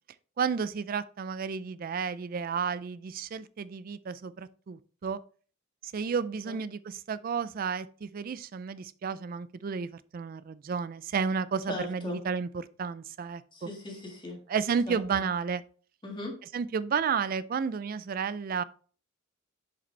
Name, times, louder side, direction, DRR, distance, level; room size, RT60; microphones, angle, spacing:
voice 1, 0.4-5.2 5.8-13.7 14.5-15.6 16.5-18.6, right 6 dB, 45° right, 0.3 m, -32 dB
voice 2, 11.7-12.2 13.5-14.4 14.9-15.2 16.0-16.3, left 1 dB, 25° left, 1.6 m, -38 dB
6.9 x 5.1 x 3.3 m
head